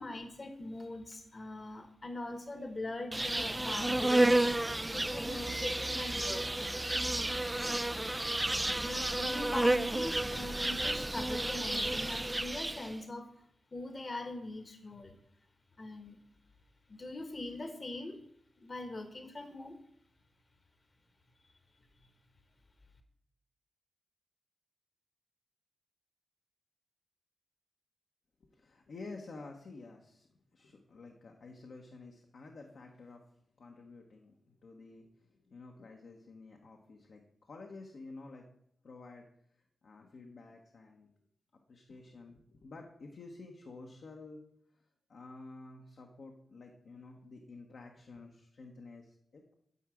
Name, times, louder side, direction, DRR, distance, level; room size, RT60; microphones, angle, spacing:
voice 1, 0.0-4.4 4.9-6.8 8.5-13.3 13.7-15.2 15.8-16.2 16.9-18.2 18.6-19.8, left 2 dB, 40° left, 6 dB, 1.3 m, -42 dB
Insect, 3.1-13.0, right 1 dB, 20° right, 0.4 m, -31 dB
voice 2, 28.4-33.2 33.6-38.5 38.8-39.3 39.8-41.1 41.7-44.4 44.7-44.8 45.1-49.5, left 3 dB, 65° left, 1 dB, 1.2 m, -51 dB
9.8 x 4.7 x 7.7 m, 0.74 s
supercardioid pair, 45°, 0 cm